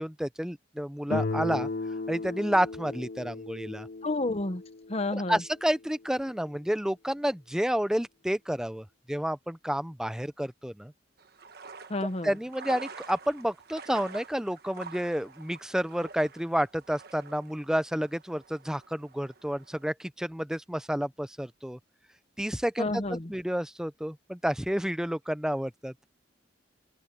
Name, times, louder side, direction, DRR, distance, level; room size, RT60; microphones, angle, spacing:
voice 1, 0.0-1.7 2.1-3.9 5.1-10.9 12.2-21.8 22.4-23.0 23.3-25.9, equal, 5° right, 0.7 m, -30 dB
Guitar, 1.1-5.9, left 3 dB, 50° left, 0.5 m, -36 dB
voice 2, 4.0-4.6 4.9-5.4 11.9-12.3 22.8-23.3, left 2 dB, 35° left, 1.0 m, -30 dB
sound 1, 11.2-19.9, right 4 dB, 55° right, 1.4 m, -47 dB
open air
head